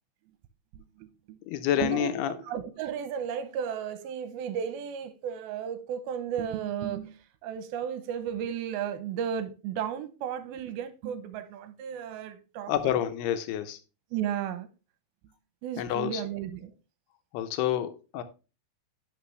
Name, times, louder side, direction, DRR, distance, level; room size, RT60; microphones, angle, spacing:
voice 1, 0.7-1.4 1.8-12.9 14.1-14.7 15.6-16.7, right 9 dB, 80° right, 2.6 m, -34 dB
voice 2, 1.5-2.3 12.7-13.8 15.8-16.2 17.3-18.2, left 11 dB, 90° left, 2.8 m, -28 dB
10.0 x 5.9 x 3.2 m
omnidirectional pair, 4.5 m